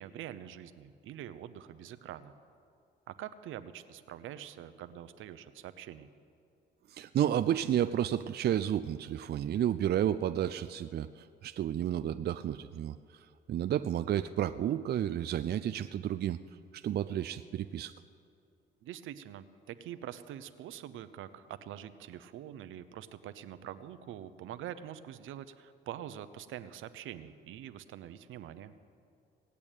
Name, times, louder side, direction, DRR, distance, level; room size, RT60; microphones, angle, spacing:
voice 1, 0.0-2.3 3.1-6.1 18.8-28.7, right 11 dB, 80° right, 12 dB, 0.8 m, -45 dB
voice 2, 6.9-12.9 13.5-16.4 16.7-17.9, right 10 dB, 55° right, 11 dB, 0.5 m, -31 dB
17.5 x 8.4 x 9.0 m, 2.5 s
cardioid pair, 90°, 20 cm